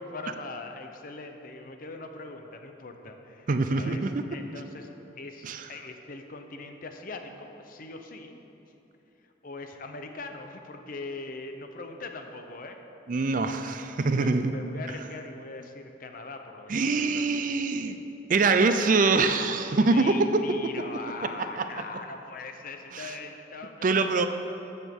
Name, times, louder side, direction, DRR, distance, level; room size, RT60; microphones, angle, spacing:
voice 1, 0.0-3.5 3.7-4.0 4.3-8.5 9.4-12.8 14.1-16.8 17.1-17.7 19.8-24.3, left 3 dB, 50° left, 5 dB, 0.7 m, -41 dB
voice 2, 3.5-4.2 5.4-5.7 13.1-14.5 16.7-18.0 18.3-20.5 21.2-21.7 22.9-23.1 23.8-24.3, right 3 dB, 45° right, 9 dB, 0.5 m, -24 dB
13.5 x 8.1 x 3.6 m, 2.9 s
head